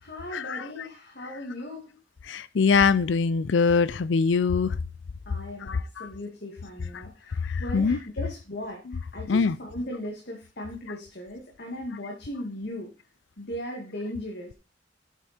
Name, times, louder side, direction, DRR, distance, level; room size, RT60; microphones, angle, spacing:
voice 1, 0.0-1.9 5.3-12.9 13.4-14.5, left 1 dB, 60° left, 2.2 m, -37 dB
voice 2, 2.3-4.8 5.7-6.1 7.4-8.0 9.3-9.5, left 5 dB, 75° left, 0.5 m, -23 dB
8.3 x 8.1 x 4.4 m
head